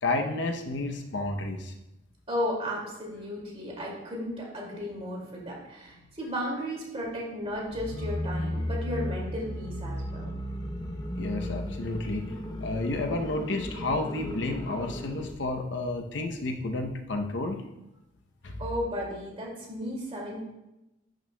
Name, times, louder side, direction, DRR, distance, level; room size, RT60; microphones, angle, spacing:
voice 1, 0.0-1.7 11.1-12.3 12.6-17.6 18.4-18.6, left 2 dB, 70° left, 4 dB, 0.7 m, -31 dB
voice 2, 2.3-10.3 18.6-20.4, equal, 35° right, -3 dB, 2.2 m, -34 dB
sound 1, 7.7-15.4, left 1 dB, 25° left, 0.7 m, -35 dB
11.0 x 6.4 x 2.2 m, 0.94 s
head